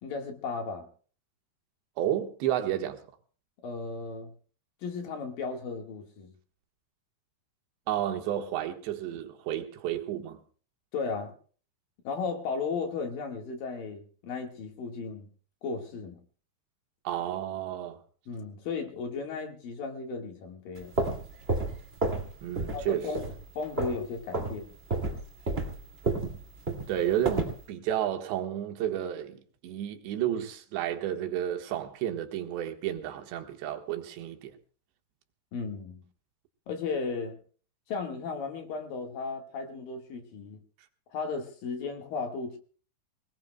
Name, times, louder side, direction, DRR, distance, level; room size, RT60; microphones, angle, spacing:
voice 1, 0.0-0.9 3.6-4.3 4.8-6.3 10.9-11.3 12.0-15.3 15.6-16.2 18.3-20.9 22.7-24.7 35.5-36.0 36.7-37.4 37.9-40.6 41.1-42.6, left 4 dB, 60° left, 3.1 m, -35 dB
voice 2, 2.0-3.0 7.9-10.4 17.1-18.0 22.4-23.1 26.9-34.6, right 11 dB, 80° right, 3.6 m, -31 dB
sound 1, 20.8-22.3 22.6-22.9 23.1-24.0 24.3-24.6 24.9-27.6, right 2 dB, 25° right, 1.3 m, -30 dB
25.5 x 18.5 x 2.2 m
omnidirectional pair, 5.0 m